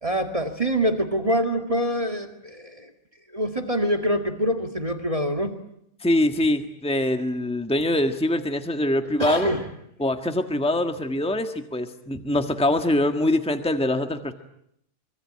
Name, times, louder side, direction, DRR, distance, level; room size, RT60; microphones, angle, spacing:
voice 1, 0.0-2.9 3.3-5.6 9.2-9.7, equal, 30° right, 6 dB, 2.1 m, -25 dB
voice 2, 6.0-9.5 10.0-14.3, left 1 dB, 5° left, 6 dB, 1.5 m, -24 dB
25.0 x 25.0 x 8.8 m, 0.73 s
omnidirectional pair, 1.2 m